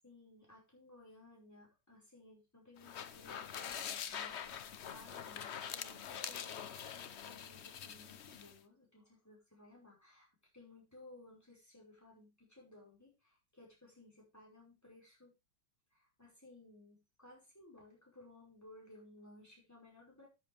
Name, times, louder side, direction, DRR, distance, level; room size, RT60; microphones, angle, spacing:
voice 1, 0.0-10.3 10.5-15.3 15.9-20.3, left 2 dB, 10° left, -3 dB, 5.2 m, -59 dB
sound 1, 2.8-8.6, left 8 dB, 65° left, 0.6 m, -45 dB
13.0 x 7.7 x 3.4 m, 0.26 s
omnidirectional pair, 2.1 m